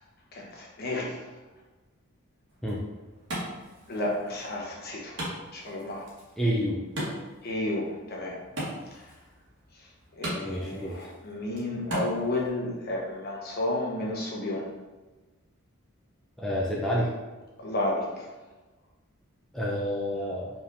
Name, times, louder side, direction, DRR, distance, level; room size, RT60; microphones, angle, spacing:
voice 1, 0.3-1.2 3.9-5.2 5.5-6.1 7.4-8.4 10.2-14.6 17.6-18.2, left 1 dB, 45° left, -2 dB, 0.9 m, -31 dB
Wood, 2.5-12.5, right 1 dB, 55° right, 1.3 m, -39 dB
voice 2, 6.4-6.8 10.4-11.0 16.4-17.1 19.5-20.5, equal, ahead, -5 dB, 0.4 m, -28 dB
4.8 x 3.5 x 2.6 m, 1.2 s
head